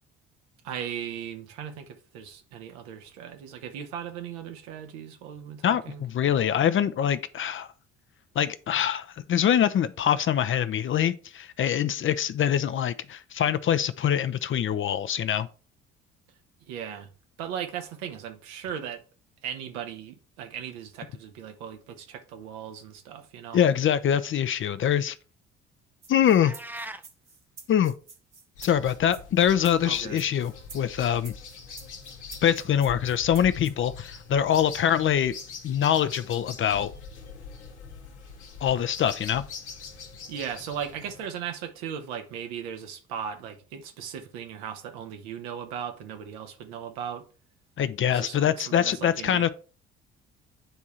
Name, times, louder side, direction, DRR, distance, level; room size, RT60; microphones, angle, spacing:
voice 1, 0.6-6.0 16.7-17.1 17.4-19.0 19.4-23.6 29.8-30.2 40.3-47.2 48.1-49.5, right 8 dB, 70° right, 1.0 m, -37 dB
voice 2, 5.6-7.7 8.3-15.5 23.5-25.2 26.1-26.5 27.7-27.9 28.6-31.3 32.4-35.3 35.6-36.9 38.6-39.4 47.8-49.5, left 9 dB, 35° left, 0.6 m, -24 dB
sound 1, 26.0-33.7, right 4 dB, 90° right, 1.0 m, -48 dB
sound 2, 26.4-27.1, right 1 dB, 5° right, 0.5 m, -38 dB
sound 3, 28.6-41.3, left 5 dB, 80° left, 1.1 m, -43 dB
9.2 x 3.5 x 4.3 m
figure-of-eight pair, 50°, 34 cm